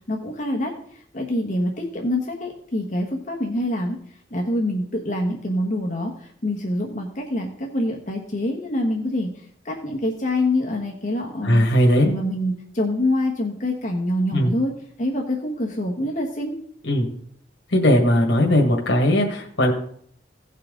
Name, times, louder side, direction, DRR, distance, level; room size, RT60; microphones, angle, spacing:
voice 1, 0.1-0.7 1.1-4.0 4.3-9.3 9.6-11.7 12.1-14.7 15.0-16.5, left 1 dB, 45° left, 0 dB, 1.3 m, -25 dB
voice 2, 11.4-12.1 14.3-14.5 16.8-17.1 17.7-19.7, equal, 90° left, 1 dB, 1.7 m, -18 dB
16.5 x 5.7 x 3.8 m, 0.62 s
head